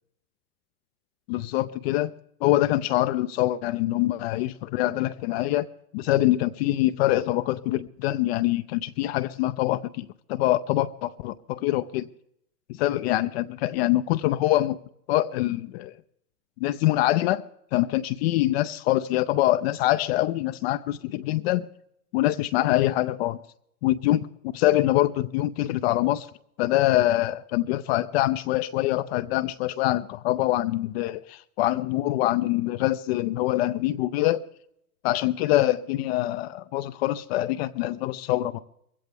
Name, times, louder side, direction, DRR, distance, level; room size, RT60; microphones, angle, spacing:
voice 1, 1.3-2.1 2.4-5.7 5.9-12.1 12.7-14.8 15.1-15.9 16.6-17.4 17.7-21.7 22.1-23.4 23.8-26.3 26.6-34.4 35.0-38.6, left 15 dB, 45° left, 0.5 m, -24 dB
21.0 x 16.0 x 3.5 m
hypercardioid pair, 120°, 46 cm